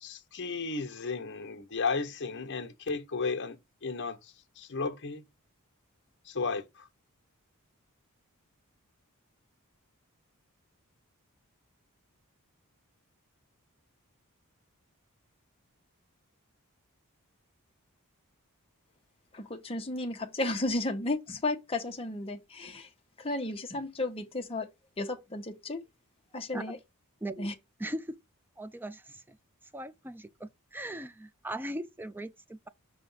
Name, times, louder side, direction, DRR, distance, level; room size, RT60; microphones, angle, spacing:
voice 1, 0.0-5.2 6.2-6.9, left 4 dB, 55° left, 0.9 m, -34 dB
voice 2, 19.3-22.9 23.2-24.7 25.0-25.8 26.3-26.8 27.4-27.5, left 2 dB, 25° left, 1.0 m, -33 dB
voice 3, 27.8-28.2 28.6-29.4 29.7-32.7, right 1 dB, 10° right, 0.4 m, -39 dB
5.6 x 3.4 x 5.4 m
head